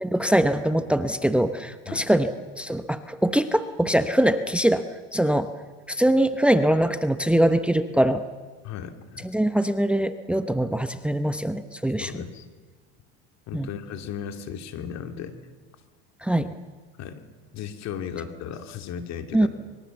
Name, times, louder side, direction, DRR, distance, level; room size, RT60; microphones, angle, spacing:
voice 1, 0.0-4.8 5.1-5.5 5.9-8.2 9.3-12.1 13.5-13.7 16.2-16.5 19.3-19.5, right 1 dB, 5° right, 10 dB, 0.9 m, -22 dB
voice 2, 8.6-9.3 12.0-12.5 13.5-15.3 17.0-17.2 17.5-19.5, left 8 dB, 55° left, 7 dB, 2.5 m, -35 dB
25.5 x 23.0 x 7.1 m, 1.5 s
supercardioid pair, 105°, 32 cm